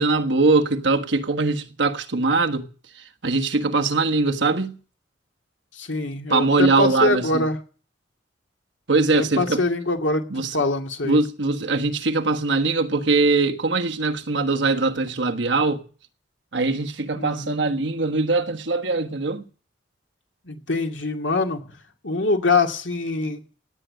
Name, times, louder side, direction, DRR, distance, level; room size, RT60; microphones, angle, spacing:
voice 1, 0.0-2.7 3.2-4.8 6.3-7.4 8.9-9.6 10.3-10.6 11.0-15.8 16.5-19.4, right 3 dB, 75° right, 1.4 m, -21 dB
voice 2, 5.7-7.6 9.1-11.2 17.2-17.6 20.4-21.6 22.0-23.4, left 3 dB, 80° left, 2.4 m, -24 dB
17.5 x 9.2 x 7.7 m
head